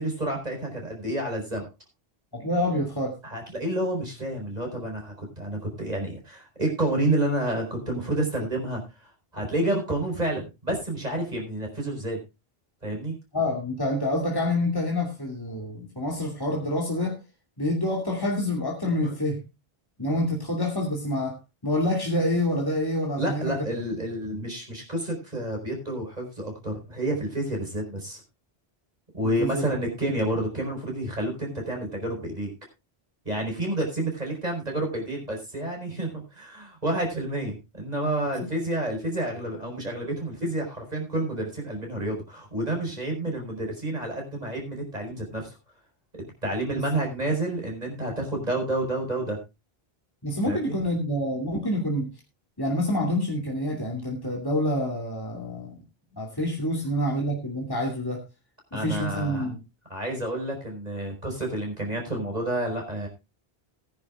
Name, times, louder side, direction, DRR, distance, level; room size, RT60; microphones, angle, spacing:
voice 1, 0.0-1.7 3.2-12.2 12.8-13.1 19.0-19.1 23.2-28.2 29.1-32.5 33.2-45.5 46.1-49.4 50.4-50.8 58.7-59.5 59.9-63.1, right 1 dB, 40° right, 2 dB, 5.0 m, -29 dB
voice 2, 2.3-3.1 13.3-17.2 17.6-19.4 20.0-21.4 21.6-23.5 29.4-29.6 50.2-52.1 52.6-55.8 56.2-58.2 58.7-59.6, left 1 dB, 20° left, -1 dB, 2.7 m, -27 dB
19.5 x 10.5 x 2.4 m, 0.25 s
omnidirectional pair, 1.0 m